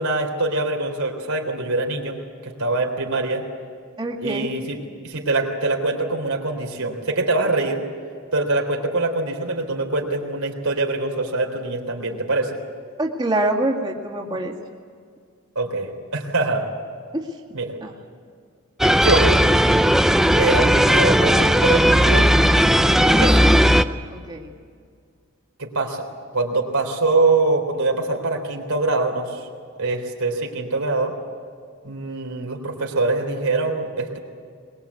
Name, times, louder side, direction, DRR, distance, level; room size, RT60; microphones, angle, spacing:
voice 1, 0.0-3.4 4.2-4.8 5.0-7.8 8.3-12.6 15.6-16.7 17.5-17.7 18.9-19.3 20.4-22.3 22.9-23.5 25.6-26.1 26.3-29.5 29.8-31.1 31.8-34.2, right 3 dB, 85° right, 2 dB, 3.8 m, -24 dB
voice 2, 4.0-4.5 13.0-14.5 17.1-17.4 17.8-17.9 24.1-24.5, right 1 dB, 20° right, -2 dB, 2.1 m, -25 dB
sound 1, 18.8-23.8, equal, ahead, 0.5 m, -16 dB
22.5 x 21.0 x 8.4 m, 2.1 s
head